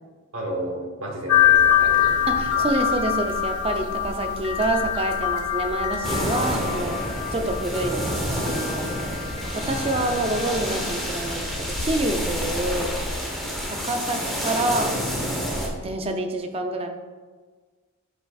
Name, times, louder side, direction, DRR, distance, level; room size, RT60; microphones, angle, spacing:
voice 1, 0.3-2.7, right 1 dB, 60° right, 0 dB, 1.3 m, -33 dB
sound 1, 1.3-13.2, left 8 dB, 80° left, 0.7 m, -25 dB
voice 2, 2.3-7.0 7.3-12.9 13.7-15.0 15.8-16.9, right 2 dB, 25° right, 5 dB, 0.5 m, -27 dB
sound 2, 6.0-15.7, equal, ahead, 0.9 m, -29 dB
7.8 x 5.2 x 2.4 m, 1.4 s
head